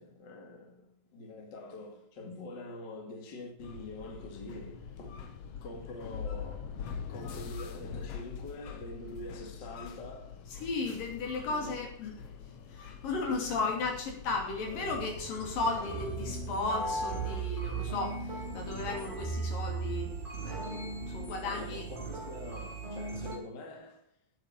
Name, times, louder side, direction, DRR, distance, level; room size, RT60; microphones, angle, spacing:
voice 1, 0.0-10.6 11.4-11.8 13.4-13.5 21.4-24.0, left 2 dB, 35° left, 2.2 m, -45 dB
sound 1, 3.6-17.4, left 7 dB, 60° left, 1.7 m, -44 dB
voice 2, 10.6-12.3 12.7-21.8, left 3 dB, 75° left, 4.4 m, -35 dB
sound 2, 14.7-23.4, right 4 dB, 15° right, 3.1 m, -37 dB
9.3 x 8.6 x 8.6 m
omnidirectional pair, 3.9 m